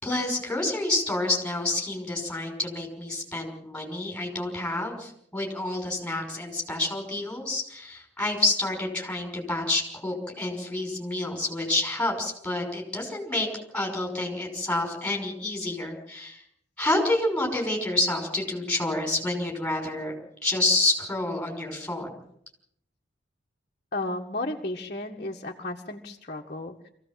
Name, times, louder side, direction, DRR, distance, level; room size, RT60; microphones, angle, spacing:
voice 1, 0.0-13.5 13.7-16.4 16.8-20.1 20.4-22.1, left 2 dB, 5° left, 0 dB, 5.9 m, -28 dB
voice 2, 23.9-26.9, left 2 dB, 40° left, -1 dB, 1.6 m, -33 dB
24.5 x 16.0 x 7.6 m, 0.73 s
head